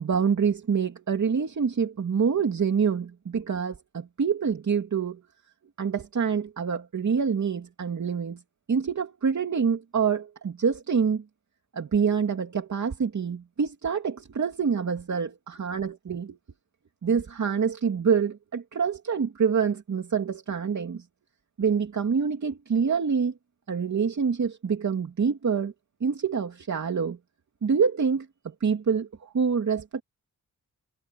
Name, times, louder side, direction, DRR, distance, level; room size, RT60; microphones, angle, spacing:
voice 1, 0.0-5.2 5.8-8.4 8.7-11.2 11.7-16.4 17.0-21.1 21.6-23.3 23.7-25.7 26.0-27.2 27.6-30.0, right 6 dB, 55° right, 2.7 m, -26 dB
wide cardioid pair, 150°, 34 cm